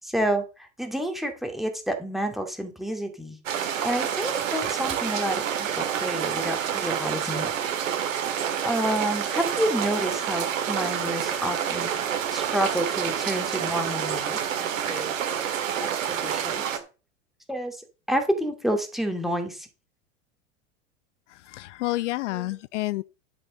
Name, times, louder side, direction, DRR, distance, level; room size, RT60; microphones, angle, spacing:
voice 1, 0.0-3.4 3.8-7.5 8.6-11.9 12.3-15.1 15.8-16.6 17.5-19.7 22.3-22.5, right 1 dB, ahead, 2.4 m, -29 dB
sound 1, 3.5-16.8, right 8 dB, 75° right, 2.0 m, -28 dB
voice 2, 21.3-23.0, left 18 dB, 65° left, 0.5 m, -29 dB
11.0 x 6.7 x 5.3 m
hypercardioid pair, 90°, 40 cm